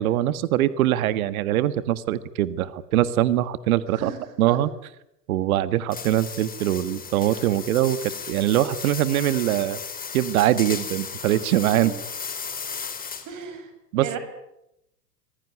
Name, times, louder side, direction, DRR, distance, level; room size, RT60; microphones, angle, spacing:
voice 1, 0.0-4.1 4.4-4.7 5.3-9.8 10.1-12.0 13.9-14.2, right 13 dB, 60° right, 15 dB, 1.7 m, -22 dB
voice 2, 3.9-4.6 11.7-12.0 13.3-13.7 14.0-14.2, right 7 dB, 40° right, 8 dB, 7.5 m, -35 dB
sound 1, 5.9-13.5, left 6 dB, 20° left, 4.2 m, -35 dB
25.5 x 20.0 x 9.8 m, 0.83 s
hypercardioid pair, 100°, 47 cm